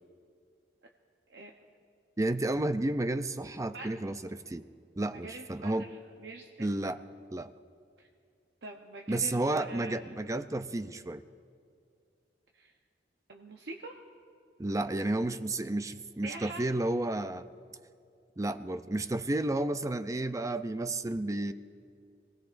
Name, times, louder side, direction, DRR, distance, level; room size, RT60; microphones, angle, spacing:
voice 1, 2.2-4.7 5.0-5.9 6.6-7.0 7.3-7.5 9.1-11.2 14.6-17.5 18.4-21.5, right 2 dB, 20° right, 11 dB, 0.5 m, -31 dB
voice 2, 5.1-6.7 8.0-8.1 8.6-10.0 12.5-12.7 13.3-13.9 16.2-16.6, right 3 dB, 70° right, 1 dB, 0.9 m, -44 dB
25.5 x 18.0 x 2.6 m, 2.3 s
head